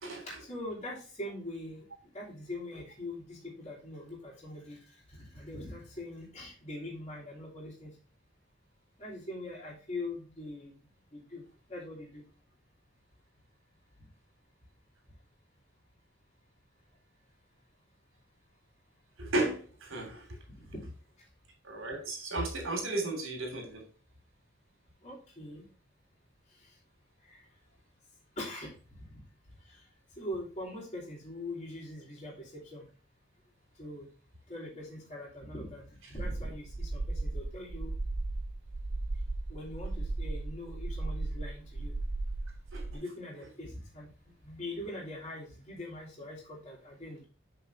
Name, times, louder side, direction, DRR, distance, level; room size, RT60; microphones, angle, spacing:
voice 1, 0.2-1.9 2.1-4.8 5.1-7.9 9.0-10.7 11.1-11.4 11.7-12.2 20.6-20.8 25.0-25.6 26.6-26.7 27.2-27.4 28.4-28.7 29.0-29.1 29.6-29.8 30.2-32.8 33.8-34.1 34.5-37.9 39.5-41.9 42.9-47.2, left 1 dB, 30° left, -9 dB, 3.0 m, -42 dB
voice 2, 19.2-20.2 21.6-23.8 42.7-42.8, right 2 dB, 80° right, 2 dB, 3.0 m, -34 dB
sound 1, 36.2-42.9, right 2 dB, 30° right, 0.4 m, -36 dB
6.8 x 5.6 x 3.4 m, 0.37 s
head